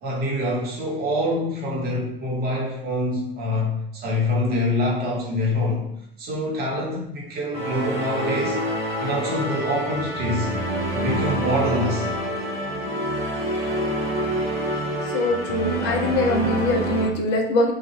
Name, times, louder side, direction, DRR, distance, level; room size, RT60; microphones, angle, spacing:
voice 1, 0.0-5.9 6.2-8.6 9.0-10.5 10.9-12.1, left 1 dB, 30° right, -2 dB, 1.0 m, -25 dB
sound 1, 7.5-17.1, right 1 dB, 10° right, 1.4 m, -27 dB
voice 2, 15.0-17.7, left 2 dB, 35° left, 2 dB, 0.6 m, -23 dB
2.6 x 2.3 x 2.7 m, 0.73 s
figure-of-eight pair, 80°, 30 cm